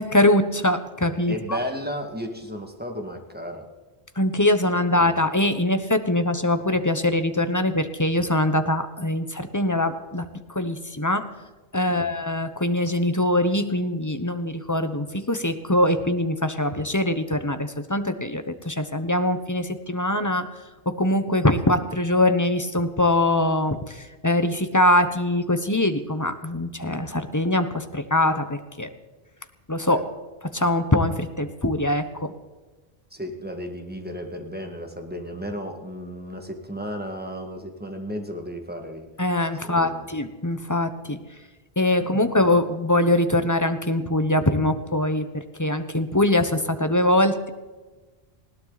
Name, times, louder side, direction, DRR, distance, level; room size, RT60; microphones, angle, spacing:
voice 1, 0.0-1.6 4.2-10.3 10.5-11.3 11.7-20.5 20.9-28.9 29.7-30.0 30.5-32.3 39.2-41.2 41.8-47.5, left 1 dB, 20° left, 9 dB, 1.0 m, -23 dB
voice 2, 1.3-3.7 4.9-5.1 11.9-12.1 29.9-30.1 33.1-39.1 39.6-40.1 42.2-42.3, equal, 10° right, 3 dB, 2.0 m, -34 dB
20.0 x 17.5 x 4.1 m, 1.2 s
omnidirectional pair, 1.1 m